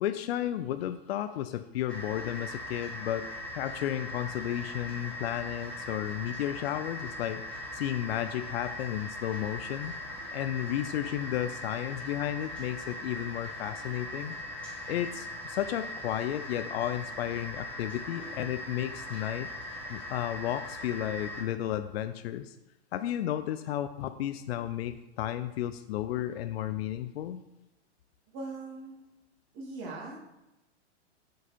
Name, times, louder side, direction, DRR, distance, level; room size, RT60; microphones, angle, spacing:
voice 1, 0.0-3.3 3.5-7.4 7.7-9.9 10.3-14.3 14.9-19.5 19.9-22.6 22.9-27.4, left 12 dB, 60° left, 10 dB, 0.4 m, -33 dB
sound 1, 1.9-21.4, left 1 dB, 5° left, 1.6 m, -40 dB
voice 2, 28.3-29.0 29.5-30.2, right 3 dB, 35° right, -3 dB, 2.3 m, -40 dB
6.9 x 4.6 x 4.3 m, 0.95 s
hypercardioid pair, 145°, 35 cm